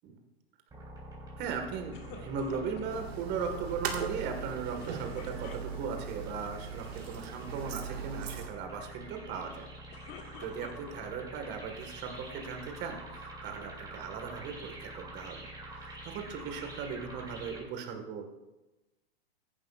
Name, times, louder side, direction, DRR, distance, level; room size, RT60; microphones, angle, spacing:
sound 1, 0.7-17.6, right 1 dB, 10° right, 3.9 m, -46 dB
voice 1, 1.4-9.7 10.4-18.3, right 6 dB, 35° right, 5 dB, 1.8 m, -38 dB
sound 2, 1.9-3.1 4.8-6.1 6.8-7.2 7.4-7.9 9.7-11.2 11.8-12.5, left 6 dB, 35° left, 1.5 m, -50 dB
sound 3, 2.9-8.5, right 7 dB, 75° right, 1.8 m, -39 dB
15.0 x 10.5 x 2.5 m, 1.0 s
hypercardioid pair, 125°, 32 cm